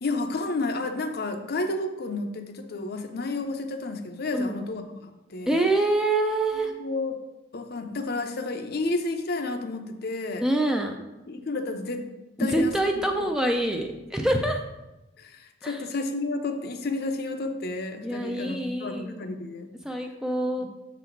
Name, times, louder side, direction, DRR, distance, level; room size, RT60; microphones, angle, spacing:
voice 1, 0.0-5.6 6.6-7.1 7.5-10.5 11.3-12.1 12.4-12.7 13.2-13.3 15.2-19.7 20.6-20.7, left 2 dB, 50° left, 6 dB, 0.6 m, -31 dB
voice 2, 4.3-4.6 5.5-6.7 10.4-11.0 12.4-14.6 15.6-15.8 18.0-19.3 19.8-20.6, right 1 dB, 5° right, 3 dB, 0.4 m, -25 dB
6.7 x 4.0 x 4.5 m, 1.0 s
head